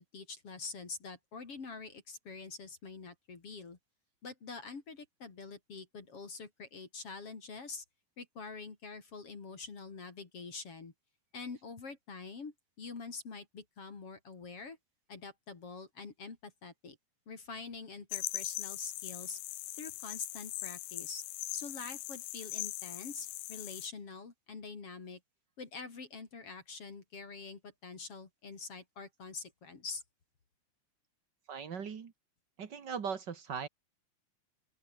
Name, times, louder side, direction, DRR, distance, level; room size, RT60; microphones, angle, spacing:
voice 1, 0.0-3.8 4.2-7.8 8.2-10.9 11.3-14.8 15.1-17.0 17.3-19.4 19.8-21.2 21.5-25.2 25.6-30.0, left 4 dB, 40° left, 3.8 m, -45 dB
sound 1, 18.1-23.9, left 16 dB, 70° left, 2.5 m, -40 dB
voice 2, 31.5-32.1 32.6-33.7, right 6 dB, 50° right, 1.3 m, -39 dB
open air
omnidirectional pair, 4.6 m